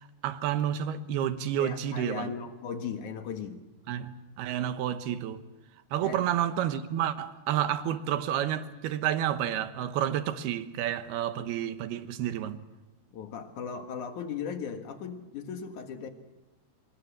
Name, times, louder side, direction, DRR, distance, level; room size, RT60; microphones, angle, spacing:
voice 1, 0.0-2.3 3.9-5.4 5.9-12.6, right 10 dB, 75° right, 3.0 m, -30 dB
voice 2, 1.6-3.6 6.0-6.3 13.1-16.1, left 6 dB, 55° left, 2.7 m, -37 dB
26.0 x 23.5 x 7.5 m
omnidirectional pair, 4.7 m